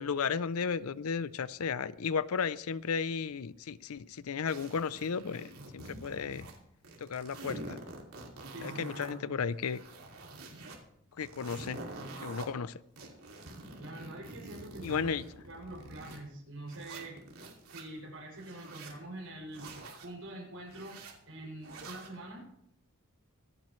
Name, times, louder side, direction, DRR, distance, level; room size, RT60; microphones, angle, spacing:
voice 1, 0.0-6.5 7.0-7.8 8.6-9.8 11.2-11.8 12.2-12.8 14.8-15.2, left 6 dB, 80° left, 17 dB, 0.5 m, -34 dB
sound 1, 4.5-6.6 6.8-9.1 9.5-10.8 11.2-12.5 13.0-16.2 16.7-17.8 18.3-19.0 19.5-20.1 20.7-21.1 21.6-22.1, right 2 dB, 85° right, 2.6 m, -46 dB
voice 2, 8.5-9.2 13.8-15.1 15.5-17.2 17.7-21.0 21.3-22.5, right 1 dB, 70° right, -2 dB, 6.5 m, -45 dB
25.0 x 9.0 x 3.2 m, 0.74 s
head